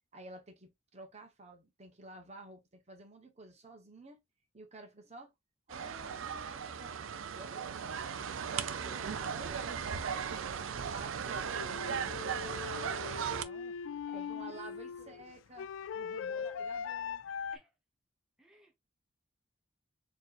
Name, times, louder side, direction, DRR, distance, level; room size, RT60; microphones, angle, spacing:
voice 1, 0.1-4.2 4.5-5.3 5.7-6.9 7.3-8.0 8.8-11.7 12.0-13.7 14.1-15.7 15.9-17.2, right 2 dB, 35° right, 1.1 m, -51 dB
sound 1, 5.7-13.4, right 7 dB, 85° right, 0.5 m, -37 dB
voice 2, 8.8-9.4 14.1-14.6 15.0-15.4 16.3-16.7 17.5-17.7 18.4-18.8, right 1 dB, 5° right, 0.9 m, -57 dB
sound 2, 11.5-17.6, left 6 dB, 75° left, 0.3 m, -40 dB
4.4 x 3.0 x 2.5 m
head